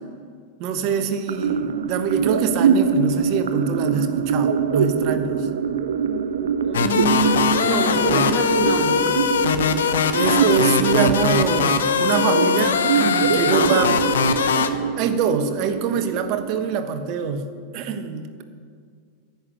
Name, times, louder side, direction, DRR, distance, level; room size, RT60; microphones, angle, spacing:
voice 1, 0.6-5.5 10.1-14.0 15.0-17.5 17.7-18.4, right 6 dB, 40° right, 8 dB, 1.2 m, -24 dB
sound 1, 1.3-17.3, right 6 dB, 65° right, 0.7 m, -24 dB
voice 2, 6.6-9.0, right 2 dB, 5° right, -4 dB, 3.5 m, -24 dB
sound 2, 6.7-14.7, left 6 dB, 65° left, 0.8 m, -21 dB
11.0 x 8.3 x 9.7 m, 2.1 s
figure-of-eight pair, 90°, 0 cm